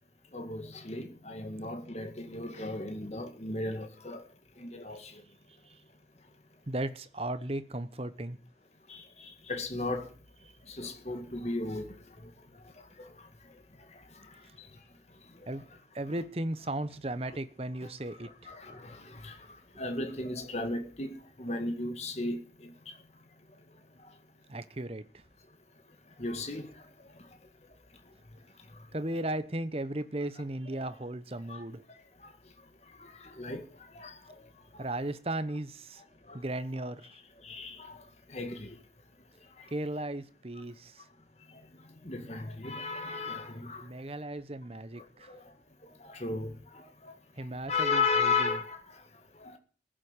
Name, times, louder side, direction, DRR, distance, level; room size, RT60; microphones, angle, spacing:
voice 1, 0.3-4.2 4.6-5.2 8.9-10.1 10.7-11.9 12.2-12.3 13.0-13.1 18.1-19.4 19.8-22.7 26.2-26.7 31.5-31.6 33.0-33.7 33.9-34.2 36.3-36.4 37.4-38.0 38.3-38.8 42.0-43.9 45.3-45.4 46.0-47.1 47.7-48.8 49.4-49.6, left 3 dB, 35° left, 1.9 m, -35 dB
voice 2, 6.7-8.4 15.5-15.6 15.9-18.5 24.5-25.0 28.9-31.8 34.8-36.0 36.3-37.0 39.7-41.0 43.8-45.3 47.4-48.5, right 1 dB, 35° right, 0.9 m, -36 dB
15.0 x 7.7 x 9.8 m
head